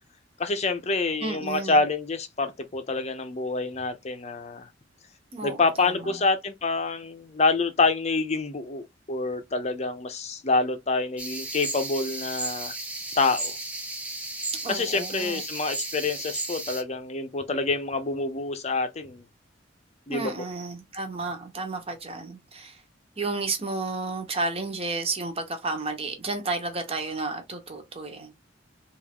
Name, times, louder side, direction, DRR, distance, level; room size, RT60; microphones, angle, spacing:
voice 1, 0.4-4.7 5.4-12.7 13.2-13.5 14.7-19.2 20.1-20.3, left 3 dB, 35° left, 0.6 m, -27 dB
voice 2, 1.2-1.8 5.3-6.1 14.6-15.4 20.1-22.8 23.2-28.3, right 3 dB, 30° right, 1.0 m, -32 dB
sound 1, 11.2-16.8, right 2 dB, 5° right, 0.7 m, -34 dB
3.5 x 2.5 x 3.5 m
head